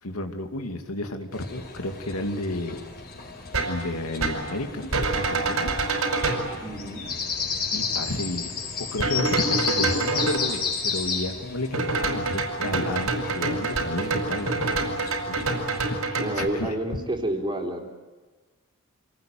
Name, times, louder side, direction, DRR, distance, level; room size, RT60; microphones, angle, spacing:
voice 1, 0.0-2.8 3.7-4.9 5.1-5.7 7.7-8.5 8.9-14.7 15.3-15.5 15.9-16.7, left 1 dB, 85° left, 5 dB, 2.6 m, -32 dB
sound 1, 1.3-16.0, left 5 dB, 45° left, 5.0 m, -33 dB
sound 2, 3.5-3.8 4.2-4.5 4.9-6.5 9.0-10.4 11.7-16.5, right 3 dB, 80° right, 5.6 m, -26 dB
voice 2, 6.6-7.1 15.1-15.5 16.2-17.9, right 1 dB, 25° right, 2 dB, 3.8 m, -30 dB
26.5 x 19.5 x 9.1 m, 1.3 s
head